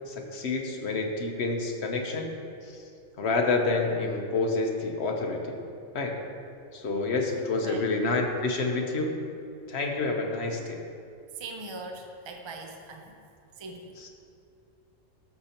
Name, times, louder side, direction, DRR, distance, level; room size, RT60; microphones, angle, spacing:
voice 1, 0.1-2.3 3.2-5.6 5.9-6.2 6.7-9.1 9.7-10.8 14.0-14.1, left 3 dB, 60° left, 2 dB, 1.1 m, -28 dB
voice 2, 11.4-13.1 13.6-13.9, right 2 dB, 35° right, 3 dB, 0.4 m, -40 dB
13.0 x 6.7 x 2.9 m, 2.5 s
omnidirectional pair, 1.3 m